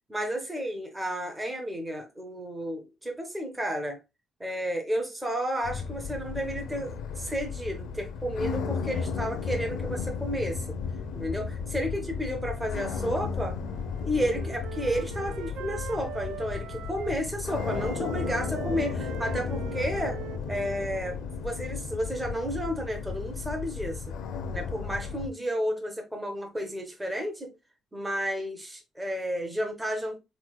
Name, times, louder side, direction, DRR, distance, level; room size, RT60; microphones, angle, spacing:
voice 1, 0.1-4.0 4.4-10.7 11.1-13.6 14.0-20.2 20.5-24.0 24.5-27.5 27.9-30.2, equal, 5° right, 0.6 m, -32 dB
sound 1, 5.6-25.3, left 5 dB, 80° left, 0.6 m, -34 dB
Wind instrument woodwind instrument, 13.6-17.2 17.5-21.3, right 10 dB, 65° right, 0.4 m, -43 dB
4.0 x 3.1 x 2.3 m
cardioid pair, 180°, 0 cm